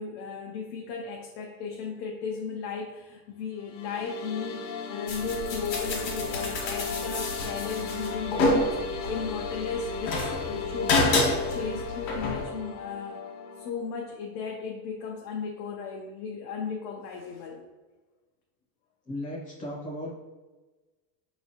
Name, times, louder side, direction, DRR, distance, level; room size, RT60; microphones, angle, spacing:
voice 1, 0.0-13.2 13.6-17.6, left 5 dB, 85° left, 0 dB, 0.7 m, -36 dB
sound 1, 3.5-13.7, left 5 dB, 50° left, 0.7 m, -36 dB
sound 2, 5.1-12.4, left 2 dB, 65° left, 1.2 m, -29 dB
voice 2, 19.1-20.1, left 1 dB, 15° left, -3 dB, 0.5 m, -36 dB
5.0 x 3.0 x 2.8 m, 1.2 s
cardioid pair, 170°, 49 cm